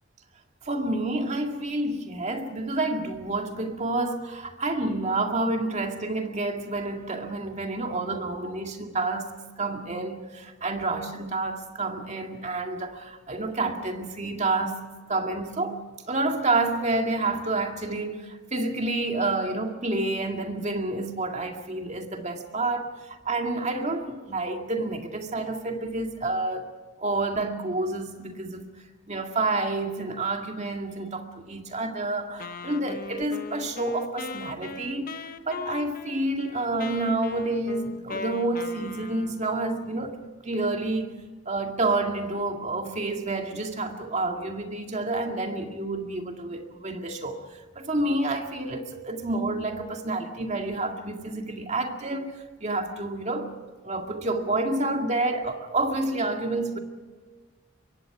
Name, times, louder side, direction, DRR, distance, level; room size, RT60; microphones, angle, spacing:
voice 1, 0.6-9.3 9.6-14.8 15.1-15.8 16.1-26.7 27.0-28.7 29.1-41.2 41.5-52.3 52.6-53.5 53.8-56.8, right 2 dB, 35° right, 2.2 m, -29 dB
Wind instrument woodwind instrument, 32.4-39.5, left 4 dB, 45° left, 1.0 m, -39 dB
25.0 x 23.0 x 4.9 m
head